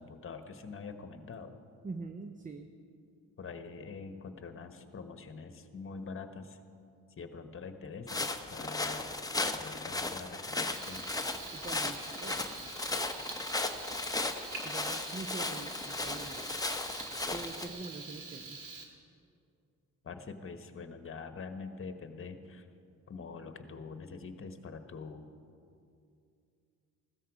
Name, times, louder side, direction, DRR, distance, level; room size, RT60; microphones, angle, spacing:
voice 1, 0.0-1.6 3.4-6.6 7.2-11.1 20.0-22.7 23.1-25.2, left 4 dB, 40° left, 8 dB, 1.2 m, -45 dB
voice 2, 1.8-2.7 11.5-12.5 14.6-16.6 17.3-18.6, right 3 dB, 25° right, 7 dB, 0.7 m, -44 dB
sound 1, 8.1-17.7, left 2 dB, 10° left, 1.0 m, -36 dB
Frying (food), 10.7-18.8, right 4 dB, 70° right, 2.1 m, -45 dB
16.0 x 13.0 x 4.9 m, 2.4 s
cardioid pair, 80°, 32 cm